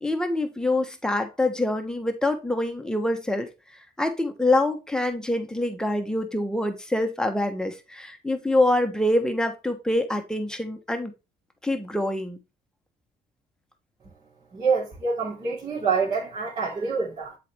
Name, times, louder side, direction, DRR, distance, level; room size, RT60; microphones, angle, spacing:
voice 1, 0.0-3.5 4.0-11.1 11.6-12.4, left 1 dB, 5° left, 1.2 m, -25 dB
voice 2, 14.5-17.4, right 5 dB, 35° right, 3.2 m, -26 dB
7.5 x 4.3 x 3.5 m
cardioid pair, 110°, 17 cm